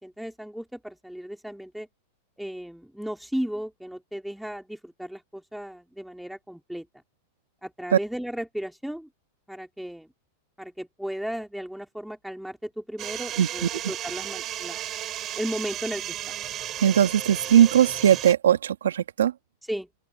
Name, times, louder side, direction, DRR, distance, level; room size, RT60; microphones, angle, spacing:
voice 1, 0.0-1.9 2.4-6.9 7.6-9.1 9.5-10.1 10.6-14.8 15.4-16.2 19.7-19.9, equal, ahead, 3.5 m, -35 dB
sound 1, 13.0-18.3, right 12 dB, 35° right, 6.5 m, -34 dB
voice 2, 13.4-13.7 16.8-19.3, right 10 dB, 90° right, 1.6 m, -19 dB
hypercardioid pair, 125°, 0 cm